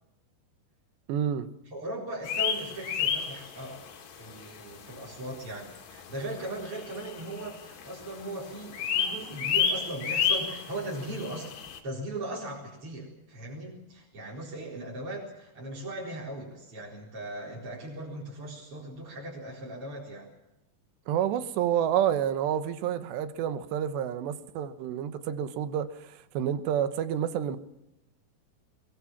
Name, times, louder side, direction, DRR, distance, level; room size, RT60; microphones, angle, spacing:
voice 1, 1.1-1.5 21.1-27.6, right 9 dB, 85° right, 3.3 m, -29 dB
voice 2, 1.7-11.6 11.8-20.3, right 1 dB, 30° right, 4.9 m, -38 dB
sound 1, 2.2-4.0 4.3-4.4 4.9-5.0 5.8-5.9 6.1-6.2 6.4-7.5 7.8-8.1 8.4-11.8, left 7 dB, 75° left, 4.4 m, -30 dB
22.5 x 21.5 x 7.3 m
omnidirectional pair, 4.9 m